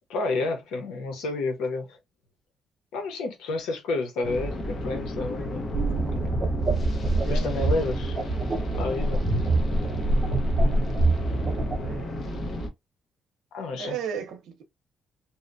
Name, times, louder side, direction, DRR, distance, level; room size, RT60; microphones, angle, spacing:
voice 1, 0.1-2.0 2.9-5.8 7.3-8.3 8.7-9.2 13.5-14.0, left 3 dB, 90° left, 0.8 m, -30 dB
sound 1, 4.2-12.7, left 1 dB, 50° left, 0.8 m, -33 dB
sound 2, 5.7-12.0, right 2 dB, 35° right, 0.7 m, -25 dB
voice 2, 7.2-7.9 11.4-12.2 13.8-14.6, right 8 dB, 80° right, 0.7 m, -36 dB
2.8 x 2.1 x 2.5 m
cardioid pair, 90°, 0 cm